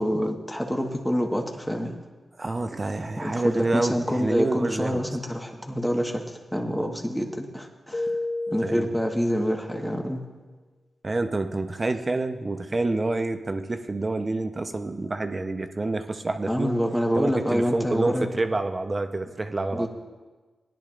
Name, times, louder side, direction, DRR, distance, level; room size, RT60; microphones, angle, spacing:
voice 1, 0.0-2.0 3.2-8.1 8.5-10.3 16.5-18.3 19.7-19.9, equal, 5° left, 2 dB, 1.4 m, -27 dB
voice 2, 2.4-5.0 8.5-8.9 11.0-16.8 17.2-19.9, right 2 dB, 35° right, 7 dB, 0.8 m, -28 dB
Keyboard (musical), 7.9-9.9, left 2 dB, 45° left, 0.8 m, -32 dB
17.5 x 10.5 x 2.5 m, 1.3 s
cardioid pair, 55°, 0 cm